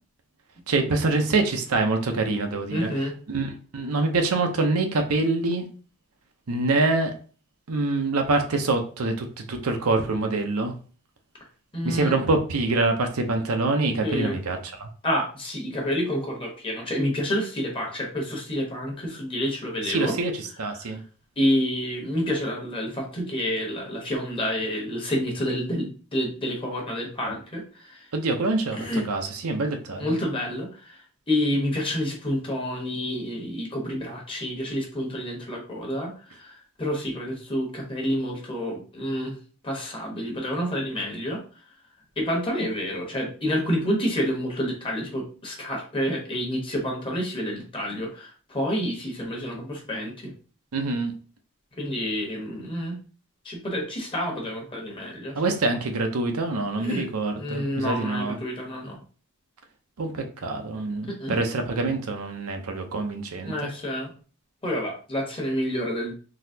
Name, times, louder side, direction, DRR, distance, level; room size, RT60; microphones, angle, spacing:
voice 1, 0.7-2.9 3.3-5.6 6.5-7.1 7.7-10.8 11.8-14.9 19.9-21.0 28.1-30.2 50.7-51.1 55.3-58.4 60.0-63.7, right 3 dB, 75° right, 4 dB, 0.7 m, -25 dB
voice 2, 2.7-3.1 11.7-12.1 14.0-14.4 15.0-20.1 20.7-20.9 21.4-28.1 28.7-29.0 30.0-39.4 39.6-41.4 42.2-50.3 51.8-53.0 53.4-55.4 56.8-57.0 57.4-59.0 61.1-61.4 63.4-64.1 64.6-66.1, equal, 25° left, 0 dB, 1.1 m, -29 dB
3.9 x 2.8 x 2.7 m, 0.39 s
head